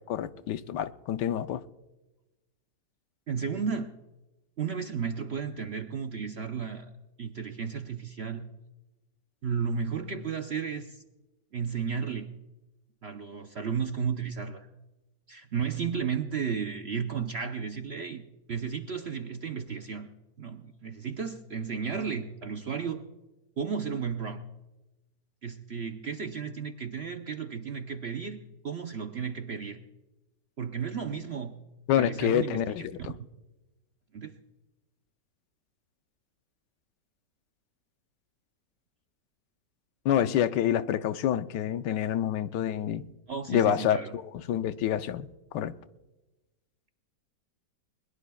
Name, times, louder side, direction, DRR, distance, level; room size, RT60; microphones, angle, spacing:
voice 1, 0.0-1.6 31.9-33.1 40.0-43.0 43.5-45.7, left 10 dB, 85° left, 1.3 m, -28 dB
voice 2, 3.3-3.9 4.6-6.9 7.2-8.5 9.4-11.0 11.5-12.3 13.0-14.7 15.3-20.1 20.4-23.0 23.6-24.4 25.4-29.8 30.6-31.6 31.9-32.6 34.1-34.3 43.3-44.1, right 6 dB, 55° right, 0.7 m, -33 dB
21.5 x 21.0 x 2.3 m
omnidirectional pair, 1.8 m